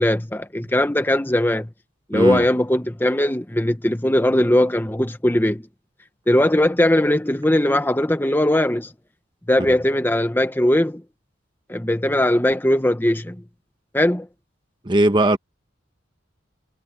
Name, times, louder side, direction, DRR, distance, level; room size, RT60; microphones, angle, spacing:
voice 1, 0.0-1.7 2.1-5.6 6.3-8.9 9.5-11.0 11.7-13.4 13.9-14.3, left 1 dB, 10° left, 0.9 m, -19 dB
voice 2, 2.1-2.4 9.7-9.8 14.8-15.4, right 1 dB, 25° right, 1.1 m, -18 dB
head